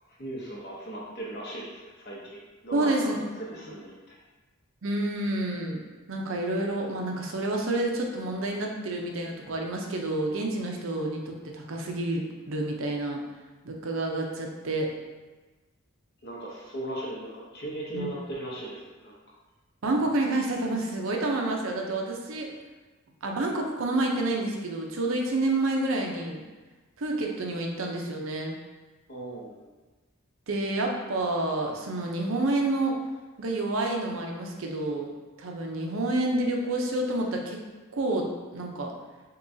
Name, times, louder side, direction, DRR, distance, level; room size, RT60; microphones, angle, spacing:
voice 1, 0.2-4.2 16.2-19.2 29.1-29.6, right 1 dB, 50° left, -5 dB, 0.8 m, -38 dB
voice 2, 2.7-3.1 4.8-5.8 6.1-13.2 13.6-14.9 17.9-18.1 19.8-22.5 23.2-26.4 27.0-28.5 30.5-33.0 33.4-35.1 35.4-37.6 37.9-38.9, right 2 dB, 65° right, 0 dB, 0.6 m, -29 dB
6.5 x 2.3 x 2.6 m, 1.3 s
head